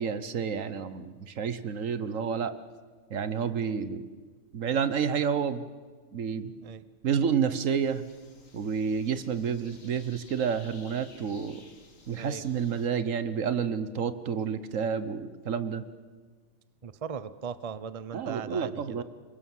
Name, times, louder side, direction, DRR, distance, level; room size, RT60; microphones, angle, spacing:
voice 1, 0.0-2.5 3.1-4.1 4.5-5.6 6.1-6.5 7.0-8.0 8.5-11.6 12.1-15.8 18.1-19.0, right 7 dB, 75° right, 12 dB, 1.4 m, -29 dB
sound 1, 7.8-12.9, left 3 dB, 80° left, 2.4 m, -55 dB
voice 2, 12.2-12.5 16.8-19.0, right 6 dB, 30° right, 14 dB, 0.7 m, -38 dB
26.5 x 22.5 x 7.4 m, 1.5 s
omnidirectional pair, 1.4 m